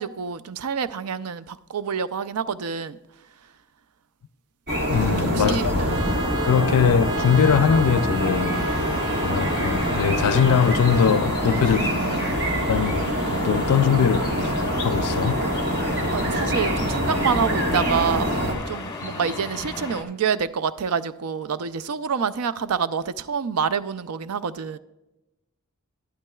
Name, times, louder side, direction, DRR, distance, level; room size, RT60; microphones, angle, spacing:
voice 1, 0.0-3.0 5.2-6.2 11.5-12.4 16.0-18.3 18.7-24.8, right 6 dB, 80° right, 0.5 m, -27 dB
sound 1, 4.7-18.5, equal, 50° right, 1.6 m, -25 dB
voice 2, 4.9-5.8 6.5-8.6 9.2-11.9 12.7-15.4, left 7 dB, 85° left, 0.4 m, -21 dB
Trumpet, 5.9-11.2, right 3 dB, 20° right, 0.5 m, -35 dB
sound 2, 8.5-20.0, left 3 dB, 20° left, 1.1 m, -35 dB
12.0 x 11.5 x 2.3 m
head